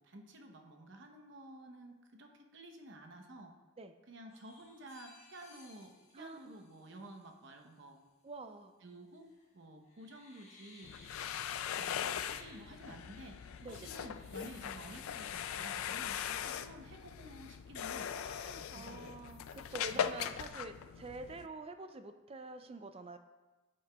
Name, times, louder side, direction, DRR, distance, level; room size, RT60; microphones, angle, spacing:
voice 1, 0.0-3.5 4.1-8.0 8.8-11.1 11.8-13.4 13.7-18.1 18.7-19.2 19.9-20.2, right 1 dB, 55° right, 4 dB, 0.9 m, -52 dB
sound 1, 4.3-7.3 9.1-9.5 9.9-17.1 17.6-17.7 17.9-18.8 19.3-19.7, left 3 dB, 30° left, 1.4 m, -60 dB
voice 2, 6.1-6.7 8.2-8.7 13.6-13.9 18.2-23.2, right 3 dB, 25° right, 9 dB, 0.4 m, -47 dB
sound 2, 10.8-21.5, left 9 dB, 75° left, 0.3 m, -40 dB
8.8 x 8.6 x 2.3 m, 1.2 s
head